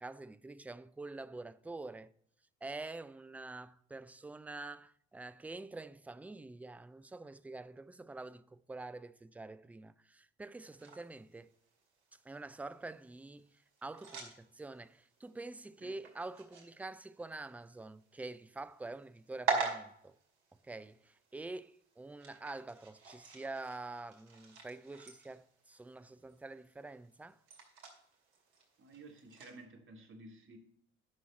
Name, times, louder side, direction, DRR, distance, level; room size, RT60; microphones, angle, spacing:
voice 1, 0.0-2.1 2.6-11.5 12.2-13.5 13.8-20.1 20.6-27.4, right 2 dB, 5° right, 0.4 m, -46 dB
sound 1, 10.8-29.6, right 3 dB, 75° right, 2.3 m, -45 dB
voice 2, 28.8-30.6, right 2 dB, 35° right, 2.2 m, -53 dB
10.5 x 6.2 x 4.2 m
hypercardioid pair, 60°, 34 cm